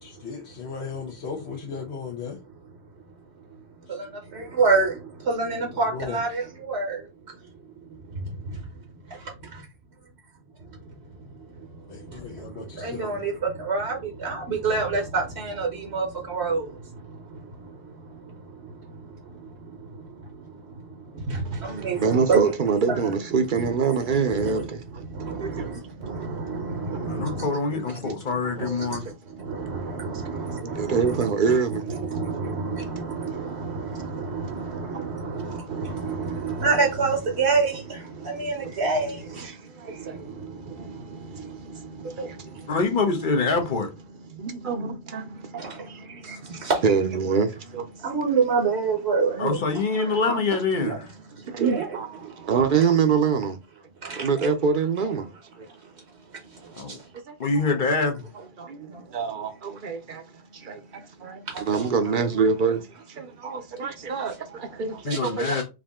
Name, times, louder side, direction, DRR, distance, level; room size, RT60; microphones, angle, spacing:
voice 1, 0.0-2.4 5.9-6.2 11.9-13.3, left 5 dB, 85° left, 1.2 m, -36 dB
voice 2, 4.3-4.9 5.3-7.1 8.1-8.6 9.1-9.3 11.6-11.7 11.9-20.8 21.1-22.4 22.9-23.0 23.6-23.7 24.1-24.7 25.1-27.5 28.0-28.1 28.6-31.2 31.9-39.5 39.9-42.1 45.6-45.8 46.1-46.8 48.0-49.6 51.6-51.9 52.2-52.5 54.0-54.3 56.5-57.0 58.9-59.0 61.5-61.8 65.1-65.6, right 4 dB, 80° right, 1.3 m, -28 dB
voice 3, 21.4-25.1 25.4-26.0 26.9-27.0 27.9-28.0 28.4-29.1 29.5-29.6 30.0-32.0 32.4-36.6 38.2-38.7 39.3-42.8 44.3-48.4 49.1-49.2 49.9-50.4 50.9-51.0 51.4-53.6 54.0-55.9 57.3-57.4 58.0-58.1 58.6-65.6, right 5 dB, 55° right, 0.8 m, -28 dB
voice 4, 27.0-29.1 42.7-43.9 49.4-51.1 56.7-57.0 57.4-58.2 65.0-65.6, left 4 dB, 50° left, 1.0 m, -25 dB
4.8 x 2.7 x 3.6 m
omnidirectional pair, 1.1 m